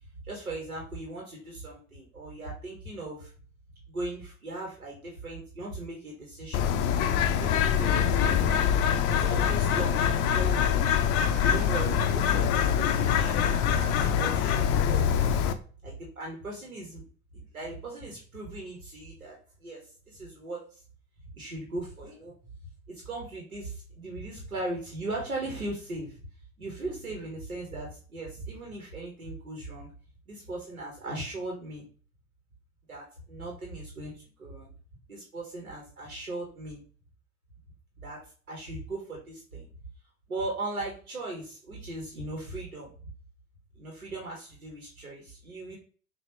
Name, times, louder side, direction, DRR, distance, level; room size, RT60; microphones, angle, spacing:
voice 1, 0.2-3.3 3.9-8.6 9.1-10.8 11.4-15.1 15.8-17.0 17.3-20.7 21.3-22.3 22.9-26.2 26.6-29.9 30.3-31.8 32.9-34.7 35.1-36.8 38.0-38.2 38.5-39.7 40.3-42.9 43.7-45.8, right 2 dB, 85° right, -2 dB, 1.3 m, -38 dB
Bird, 6.5-15.5, left 8 dB, 35° left, 0.5 m, -24 dB
5.8 x 2.7 x 3.0 m, 0.39 s
figure-of-eight pair, 75°, 42 cm